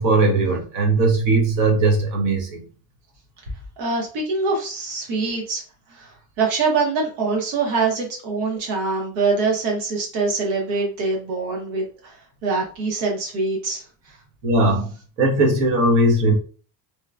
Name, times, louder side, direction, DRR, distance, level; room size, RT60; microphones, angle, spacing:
voice 1, 0.0-2.6 14.4-14.9 15.2-16.3, right 2 dB, 45° right, 1 dB, 0.8 m, -19 dB
voice 2, 3.8-5.6 5.9-12.1 12.4-13.8, right 4 dB, 75° right, 0 dB, 1.0 m, -24 dB
2.9 x 2.1 x 2.4 m, 0.39 s
cardioid pair, 170°, 44 cm